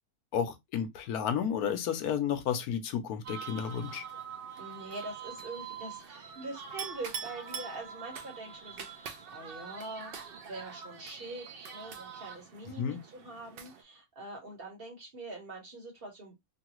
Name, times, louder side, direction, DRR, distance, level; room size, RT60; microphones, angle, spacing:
voice 1, 0.3-4.0 12.8-13.0, left 8 dB, 80° left, 1.2 m, -32 dB
sound 1, 3.2-13.8, right 6 dB, 65° right, 0.5 m, -45 dB
voice 2, 4.6-16.4, right 2 dB, 40° right, 1.3 m, -44 dB
Chink clink, 6.8-8.4, right 7 dB, 90° right, 1.3 m, -41 dB
3.2 x 2.3 x 2.9 m
omnidirectional pair, 1.6 m